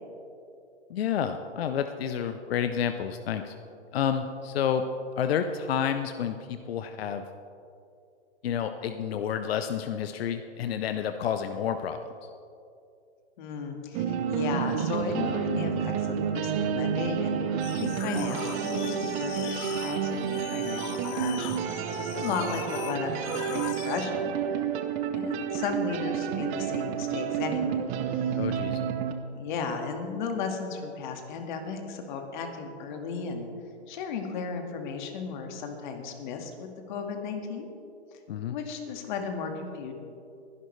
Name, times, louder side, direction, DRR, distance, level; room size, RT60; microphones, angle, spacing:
voice 1, 0.9-3.5 3.9-4.8 5.2-7.2 8.4-12.0 28.3-28.8 38.3-38.6, left 8 dB, 60° left, 8 dB, 0.8 m, -29 dB
voice 2, 13.4-24.7 25.1-27.8 29.3-33.5 33.9-37.7 38.5-39.9, left 5 dB, 45° left, 4 dB, 1.9 m, -35 dB
sound 1, 13.9-29.1, right 8 dB, 20° right, 0.7 m, -30 dB
sound 2, 17.6-24.1, left 11 dB, 25° left, 0.5 m, -41 dB
22.0 x 11.0 x 3.3 m, 2.6 s
hypercardioid pair, 140°, 35 cm